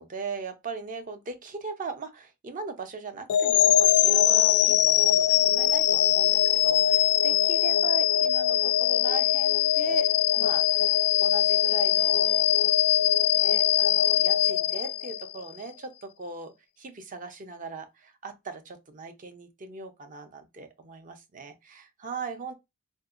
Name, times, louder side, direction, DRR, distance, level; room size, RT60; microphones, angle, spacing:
voice 1, 0.0-12.6 13.3-22.5, right 4 dB, 40° right, 0.5 m, -39 dB
sound 1, 3.3-15.4, left 11 dB, 80° left, 0.3 m, -22 dB
3.7 x 2.5 x 2.4 m
head